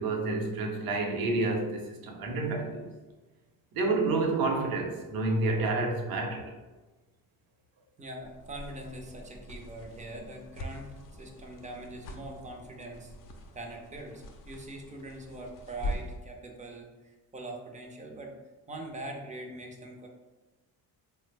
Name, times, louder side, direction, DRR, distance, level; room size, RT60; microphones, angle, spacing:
voice 1, 0.0-2.9 3.7-6.5, right 3 dB, 65° right, 2 dB, 0.7 m, -29 dB
voice 2, 8.0-13.1 13.5-18.3 18.7-20.1, right 1 dB, 20° right, 1 dB, 0.4 m, -43 dB
sound 1, 8.2-16.3, left 1 dB, 60° left, 0.5 m, -43 dB
3.2 x 2.0 x 3.2 m, 1.2 s
cardioid pair, 115°, 38 cm